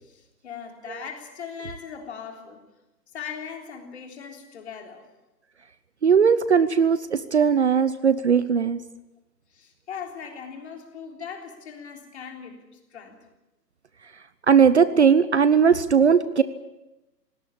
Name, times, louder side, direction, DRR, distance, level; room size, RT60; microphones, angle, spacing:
voice 1, 0.0-2.6 3.1-5.1 9.5-13.2, left 7 dB, 40° left, 3.7 m, -39 dB
voice 2, 6.0-8.8 14.5-16.4, right 6 dB, 40° right, 0.8 m, -18 dB
21.0 x 17.5 x 8.5 m
hypercardioid pair, 165°, 50 cm